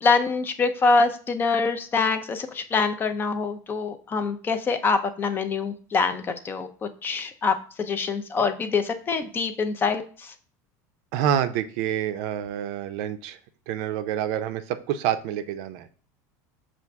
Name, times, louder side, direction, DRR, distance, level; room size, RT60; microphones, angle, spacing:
voice 1, 0.0-10.3, left 4 dB, 25° left, 8 dB, 0.4 m, -25 dB
voice 2, 11.1-13.4 13.7-15.9, right 10 dB, 65° right, 11 dB, 0.4 m, -27 dB
5.8 x 2.4 x 3.4 m, 0.42 s
supercardioid pair, 135°, 9 cm